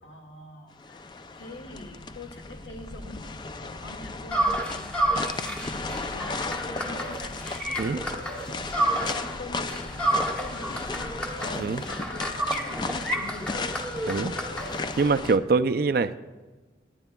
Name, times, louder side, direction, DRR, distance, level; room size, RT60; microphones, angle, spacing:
voice 1, 0.0-1.0 1.3-13.8, left 2 dB, 75° left, 2 dB, 1.9 m, -44 dB
sound 1, 0.8-15.4, left 3 dB, 25° left, 0.3 m, -35 dB
sound 2, 4.3-9.4 9.7-15.2, right 1 dB, 5° left, 1.1 m, -30 dB
voice 2, 15.0-16.2, right 4 dB, 50° right, 11 dB, 0.4 m, -24 dB
26.0 x 9.8 x 2.3 m, 1.3 s
head